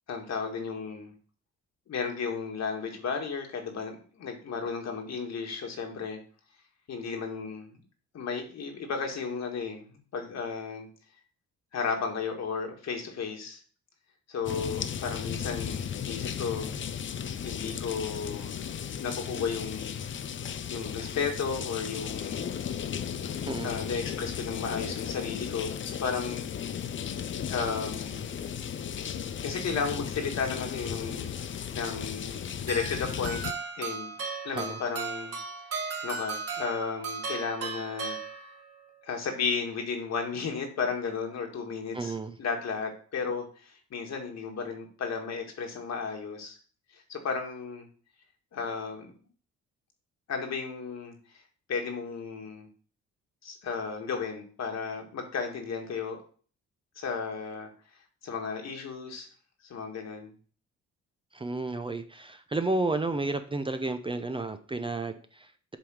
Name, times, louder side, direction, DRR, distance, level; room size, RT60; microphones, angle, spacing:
voice 1, 0.1-1.1 1.9-6.2 6.9-7.8 8.1-10.9 11.7-13.6 14.3-16.7 17.4-18.6 19.0-19.9 20.7-22.5 23.6-26.5 27.5-28.3 29.4-33.4 33.8-34.1 34.4-35.4 36.0-38.2 39.0-46.6 46.9-47.9 48.5-49.1 50.3-51.1 51.7-52.7 53.4-56.2 57.0-57.7 58.2-59.3 59.6-60.3, left 5 dB, 60° left, 3 dB, 1.9 m, -34 dB
sound 1, 14.5-33.5, left 8 dB, 40° left, 0.5 m, -35 dB
sound 2, 32.7-38.8, right 5 dB, 50° right, 1.9 m, -36 dB
voice 2, 41.9-42.4 61.3-65.8, right 2 dB, 15° right, 8 dB, 0.7 m, -32 dB
7.5 x 3.6 x 6.4 m, 0.43 s
cardioid pair, 90°, 30 cm